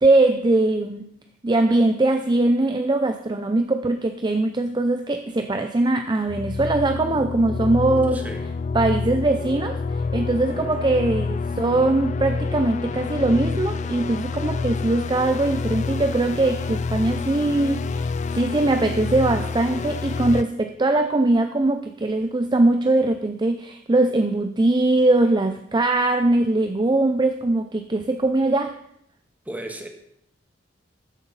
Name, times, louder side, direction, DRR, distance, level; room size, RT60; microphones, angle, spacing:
voice 1, 0.0-1.1 1.4-8.2 8.7-28.8, right 2 dB, 25° right, 0.5 m, -21 dB
sound 1, 6.3-20.4, left 4 dB, 40° left, 0.3 m, -28 dB
voice 2, 8.1-8.5 29.4-29.9, right 1 dB, 10° right, 1.5 m, -34 dB
13.5 x 9.6 x 4.0 m
head